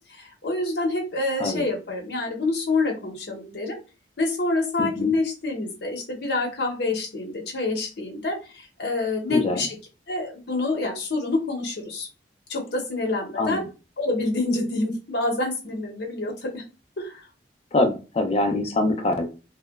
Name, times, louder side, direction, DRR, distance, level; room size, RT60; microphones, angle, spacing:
voice 1, 0.1-3.8 4.2-9.7 10.1-12.1 12.5-13.7 14.0-16.6 17.0-17.2, left 2 dB, 65° left, 1 dB, 0.7 m, -27 dB
voice 2, 4.8-5.1 9.3-9.6 13.4-13.7 17.7-19.3, left 2 dB, 35° left, 5 dB, 0.4 m, -24 dB
2.8 x 2.1 x 2.2 m, 0.33 s
head